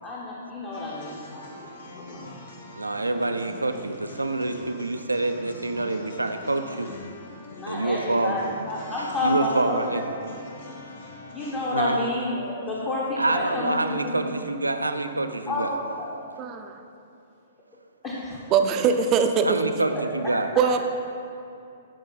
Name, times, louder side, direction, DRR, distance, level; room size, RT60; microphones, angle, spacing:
voice 1, 0.0-1.7 2.0-2.3 7.5-10.3 11.3-14.3 15.5-16.1 18.0-18.5, left 2 dB, 25° left, -6 dB, 1.1 m, -30 dB
sound 1, 0.7-11.7, left 2 dB, 55° left, 1.5 m, -43 dB
voice 2, 2.8-6.9 7.7-8.4 9.0-10.0 11.7-12.0 13.2-15.7 19.4-20.5, right 2 dB, 80° right, 7 dB, 0.5 m, -26 dB
voice 3, 16.4-16.8 18.5-19.5 20.6-20.8, right 6 dB, 25° right, 6 dB, 0.6 m, -21 dB
13.5 x 4.7 x 3.9 m, 2.6 s
figure-of-eight pair, 115°, 0 cm